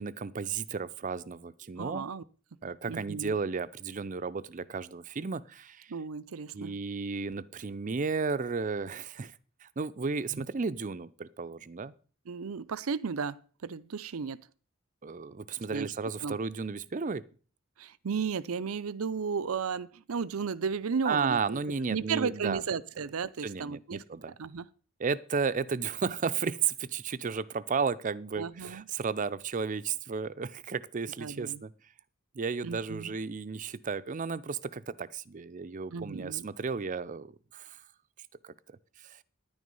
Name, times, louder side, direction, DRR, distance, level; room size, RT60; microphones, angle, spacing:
voice 1, 0.0-2.1 2.6-5.9 6.5-9.3 9.6-11.9 15.0-17.2 21.0-22.6 23.4-24.3 25.0-31.7 32.3-37.8 38.4-38.8 39.0-39.2, right 5 dB, 40° right, 0.5 m, -33 dB
voice 2, 1.8-2.2 2.9-3.3 5.9-6.7 10.3-10.4 12.3-14.5 15.7-15.9 16.2-16.4 17.8-21.6 21.9-24.0 24.4-24.7 28.4-28.9 31.2-31.6 32.6-33.1 35.9-36.5, right 5 dB, 85° right, 0.6 m, -34 dB
10.5 x 9.5 x 5.4 m
head